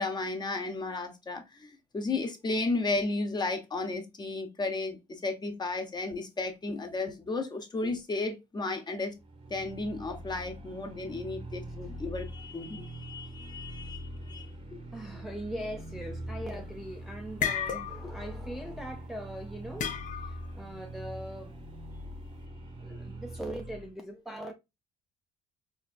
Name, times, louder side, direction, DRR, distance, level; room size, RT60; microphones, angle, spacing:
voice 1, 0.0-9.1 9.5-14.5, left 3 dB, 25° left, 0.9 m, -34 dB
sound 1, 9.2-23.9, right 1 dB, 30° right, 0.7 m, -43 dB
voice 2, 14.9-21.6 22.8-24.5, right 1 dB, ahead, 0.4 m, -41 dB
sound 2, 16.5-16.8 17.2-18.2 18.5-18.8 19.8-20.5, left 8 dB, 50° left, 0.6 m, -33 dB
4.3 x 2.5 x 2.4 m
cardioid pair, 110°, 17 cm